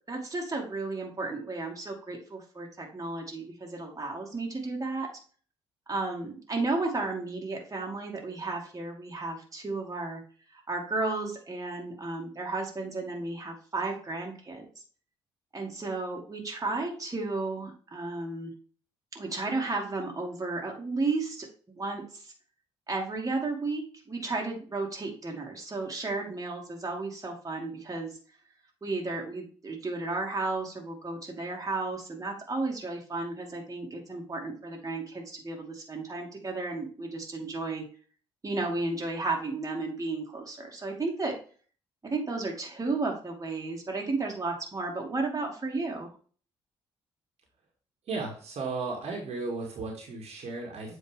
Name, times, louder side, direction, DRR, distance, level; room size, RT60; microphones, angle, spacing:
voice 1, 0.1-5.1 5.9-10.2 10.5-14.7 15.5-18.5 19.1-21.5 21.8-22.3 22.9-28.1 28.8-37.9 38.4-41.4 42.0-46.1, right 3 dB, 25° right, 0 dB, 2.4 m, -33 dB
voice 2, 48.1-51.0, right 3 dB, 55° right, 0 dB, 2.0 m, -35 dB
7.9 x 4.6 x 3.6 m, 0.42 s
figure-of-eight pair, 45°, 13 cm